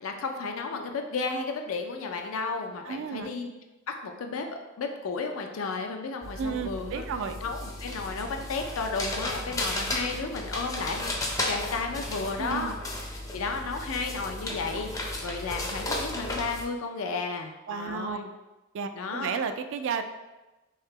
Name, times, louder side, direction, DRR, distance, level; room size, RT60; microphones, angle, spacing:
voice 1, 0.0-3.5 3.9-7.0 7.4-11.2 11.5-12.7 13.3-18.3 18.9-19.3, left 4 dB, 85° left, 4 dB, 0.5 m, -33 dB
voice 2, 2.9-3.3 6.3-7.4 12.4-12.8 17.7-18.2 18.7-20.0, right 6 dB, 65° right, 8 dB, 0.3 m, -32 dB
sound 1, 6.2-16.6, left 1 dB, 15° left, 0.4 m, -34 dB
3.6 x 2.8 x 3.2 m, 1.1 s
head